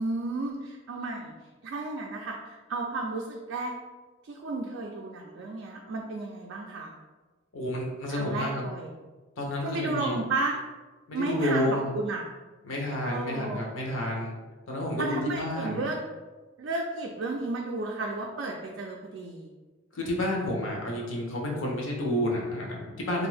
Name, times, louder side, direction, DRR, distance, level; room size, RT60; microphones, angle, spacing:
voice 1, 0.0-1.3 1.6-3.7 4.2-7.0 8.1-8.9 9.6-10.6 11.1-12.2 13.0-13.6 15.0-16.0 16.6-19.5, right 3 dB, 60° right, -1 dB, 0.3 m, -33 dB
voice 2, 7.5-8.6 9.4-10.2 11.1-12.0 12.6-14.3 14.7-15.8 19.9-23.3, left 1 dB, 80° left, -1 dB, 0.7 m, -30 dB
2.6 x 2.4 x 3.3 m, 1.3 s
head